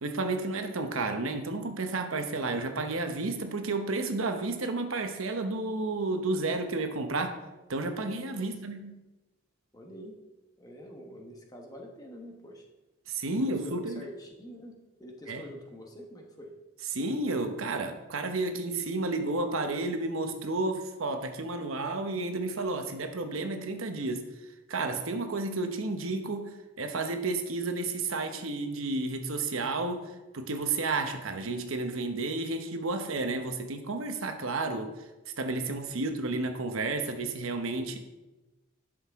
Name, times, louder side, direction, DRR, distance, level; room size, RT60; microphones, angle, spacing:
voice 1, 0.0-7.4 7.7-9.0 13.1-14.0 15.3-15.4 16.9-24.3 24.7-34.9 35.4-38.0, right 2 dB, 85° right, 6 dB, 0.9 m, -31 dB
voice 2, 9.7-10.2 10.6-12.7 13.3-16.5 36.0-36.2, equal, 20° left, 0 dB, 1.2 m, -46 dB
11.0 x 6.4 x 3.6 m, 1.1 s
head